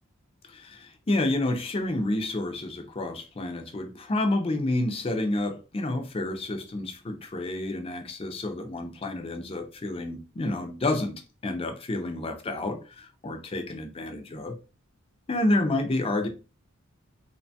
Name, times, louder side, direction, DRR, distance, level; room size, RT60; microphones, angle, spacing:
voice 1, 0.4-14.6 15.3-16.3, left 2 dB, 25° left, 0.4 m, -29 dB
2.9 x 2.2 x 2.7 m
head